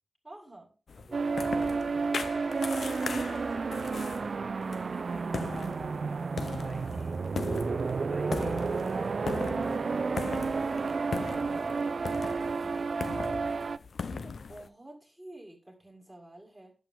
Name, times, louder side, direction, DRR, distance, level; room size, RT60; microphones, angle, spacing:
voice 1, 0.2-0.7 14.0-16.7, right 1 dB, 10° right, 0 dB, 2.1 m, -49 dB
sound 1, 0.9-14.7, left 5 dB, 85° left, 0.5 m, -39 dB
voice 2, 1.0-2.4 3.2-8.7 9.0-9.8 10.2-12.9, equal, 10° left, 4 dB, 2.4 m, -51 dB
sound 2, 1.1-13.8, right 4 dB, 70° right, 0.4 m, -31 dB
10.5 x 7.6 x 3.6 m, 0.34 s
wide cardioid pair, 90°, 0 cm